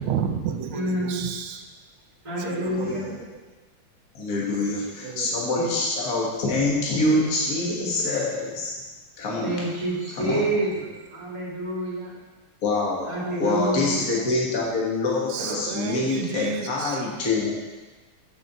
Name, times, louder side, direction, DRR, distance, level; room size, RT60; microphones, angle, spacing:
voice 1, 0.0-1.6 2.4-3.2 4.4-4.7 5.0-5.4 15.3-17.0, right 7 dB, 80° right, 6 dB, 1.5 m, -32 dB
voice 2, 0.7-1.3 2.2-3.1 5.5-5.7 7.1-7.2 7.7-7.9 9.4-12.1 13.1-14.0 15.5-15.6, right 1 dB, 15° right, -6 dB, 2.2 m, -28 dB
voice 3, 2.7-3.2 4.1-8.7 9.2-9.6 10.2-10.4 12.6-13.1 13.4-17.6, left 2 dB, 45° left, -3 dB, 1.9 m, -25 dB
6.8 x 5.9 x 6.7 m, 1.3 s
omnidirectional pair, 2.3 m